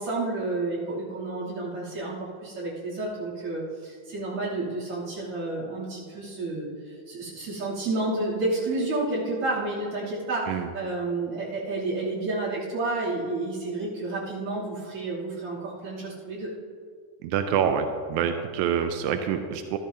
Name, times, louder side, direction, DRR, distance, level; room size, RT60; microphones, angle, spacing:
voice 1, 0.0-16.5, right 2 dB, 45° right, -8 dB, 3.6 m, -30 dB
voice 2, 17.2-19.8, right 8 dB, 85° right, 6 dB, 1.7 m, -26 dB
14.0 x 12.5 x 2.8 m, 2.1 s
omnidirectional pair, 3.9 m